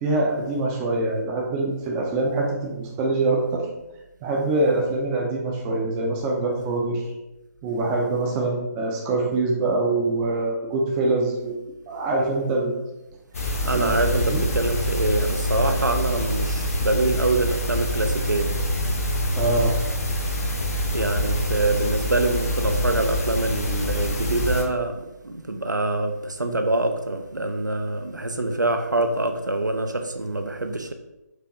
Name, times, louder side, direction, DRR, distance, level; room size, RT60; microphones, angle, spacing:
voice 1, 0.0-3.7 4.2-7.0 7.6-11.6 11.9-12.7 13.6-14.4 19.4-19.7, right 2 dB, 10° right, -1 dB, 0.4 m, -24 dB
sound 1, 13.3-24.6, equal, 55° left, 0.7 m, -25 dB
voice 2, 13.6-18.5 20.9-24.9 25.2-30.9, right 2 dB, 90° right, 5 dB, 0.5 m, -25 dB
4.6 x 2.5 x 2.9 m, 0.97 s
figure-of-eight pair, 145°, 10 cm